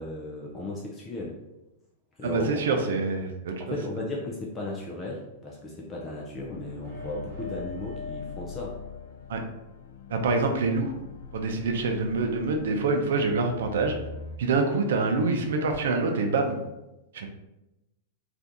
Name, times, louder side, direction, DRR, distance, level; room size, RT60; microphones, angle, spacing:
voice 1, 0.0-1.4 2.2-2.6 3.6-8.7, left 1 dB, 15° left, -3 dB, 0.3 m, -35 dB
voice 2, 2.2-3.8 9.3-9.4 10.1-10.9 11.3-14.0 14.4-16.6 17.1-17.3, right 3 dB, 75° right, 4 dB, 0.6 m, -26 dB
sound 1, 6.3-14.4, left 5 dB, 90° left, 0.3 m, -43 dB
sound 2, 6.8-9.5, left 3 dB, 35° right, 1.0 m, -42 dB
2.7 x 2.5 x 3.5 m, 0.95 s
supercardioid pair, 180°, 0 cm